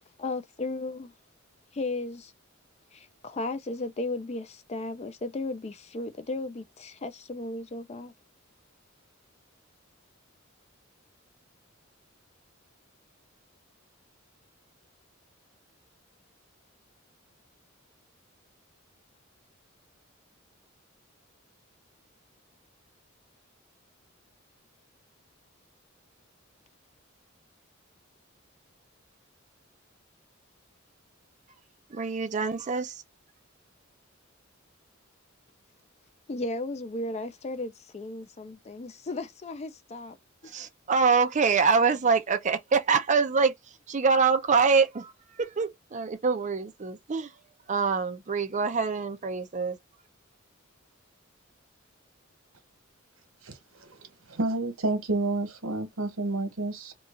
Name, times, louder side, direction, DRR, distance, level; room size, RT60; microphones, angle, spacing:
voice 1, 0.2-1.1 1.7-2.3 2.9-8.1 36.3-40.2 40.4-40.5, left 2 dB, 30° left, 0.4 m, -35 dB
voice 2, 31.9-33.0 40.5-43.5 43.9-45.1 45.4-47.3 47.7-49.8, right 5 dB, 35° right, 0.5 m, -25 dB
voice 3, 53.4-53.9 54.3-56.9, right 2 dB, 85° right, 1.2 m, -30 dB
3.0 x 2.4 x 3.7 m
head